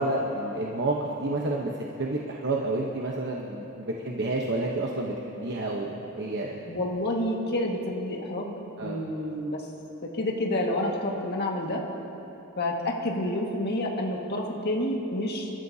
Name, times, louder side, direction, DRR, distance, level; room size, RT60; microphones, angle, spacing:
voice 1, 0.0-6.6 8.8-9.0, right 2 dB, 50° right, -2 dB, 1.0 m, -30 dB
voice 2, 6.7-8.5 8.8-9.6 10.0-11.8 12.6-15.5, left 1 dB, 45° left, -1 dB, 1.8 m, -29 dB
28.5 x 13.5 x 2.8 m, 3.0 s
head